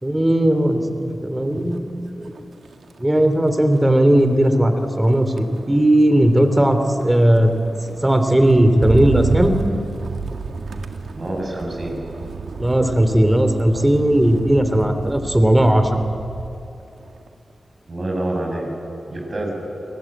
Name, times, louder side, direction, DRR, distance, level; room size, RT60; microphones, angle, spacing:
voice 1, 0.0-2.3 3.0-7.5 8.0-9.5 12.6-15.9, right 1 dB, 15° right, 8 dB, 2.9 m, -17 dB
Motor vehicle (road), 1.6-1.9 2.2-16.7 17.1-17.5, right 4 dB, 85° right, 1.7 m, -31 dB
voice 2, 11.1-12.1 17.9-18.7 19.1-19.5, right 1 dB, 50° right, -1 dB, 7.0 m, -26 dB
28.5 x 20.0 x 9.2 m, 2.7 s
cardioid pair, 65°, 0 cm